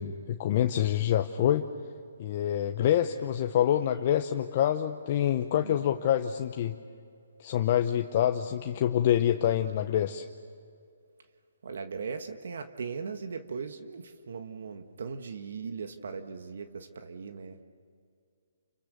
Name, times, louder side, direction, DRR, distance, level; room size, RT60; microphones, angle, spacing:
voice 1, 0.0-1.7 2.2-6.8 7.4-10.2, left 10 dB, 40° left, 6 dB, 0.9 m, -26 dB
voice 2, 5.6-5.9 11.6-17.6, right 5 dB, 70° right, 7 dB, 1.6 m, -39 dB
29.0 x 26.5 x 6.9 m, 2.3 s
hypercardioid pair, 155°, 0 cm